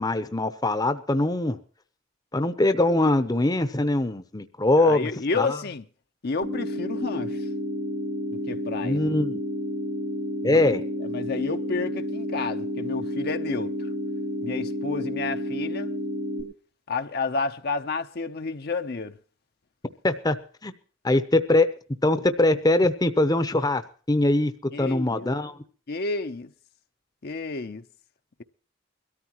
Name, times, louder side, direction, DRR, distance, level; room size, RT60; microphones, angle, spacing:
voice 1, 0.0-1.6 2.3-5.6 8.8-9.4 10.4-10.8 20.0-20.4 20.6-20.7 21.0-21.7 22.0-23.8 24.1-24.5 24.8-25.6, left 2 dB, 20° left, 0.8 m, -22 dB
voice 2, 4.8-5.8 6.2-7.4 8.5-9.0 10.4-10.7 11.1-13.7 14.4-15.9 16.9-19.1 24.7-25.3 25.9-26.5 27.2-27.8, left 3 dB, 55° left, 0.7 m, -30 dB
sound 1, 6.4-16.4, left 1 dB, 80° right, 4.8 m, -31 dB
22.0 x 13.5 x 3.0 m
head